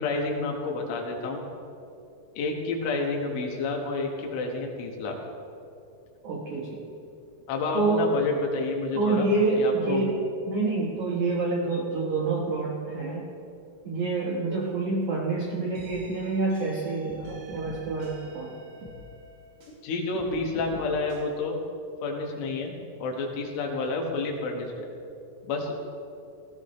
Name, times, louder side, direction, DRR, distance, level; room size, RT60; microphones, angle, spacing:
voice 1, 0.0-1.4 2.4-5.2 7.5-9.3 9.6-10.1 19.8-21.6 22.0-22.7 23.0-24.9 25.4-25.7, left 3 dB, 75° left, 0 dB, 3.9 m, -29 dB
voice 2, 6.2-6.8 7.7-8.1 8.9-10.2 10.5-13.3 13.8-18.5, right 3 dB, 80° right, -2 dB, 1.7 m, -27 dB
sound 1, 15.7-19.8 20.1-21.2, equal, 60° right, 4.2 m, -46 dB
18.0 x 16.5 x 3.2 m, 2.6 s
omnidirectional pair, 5.8 m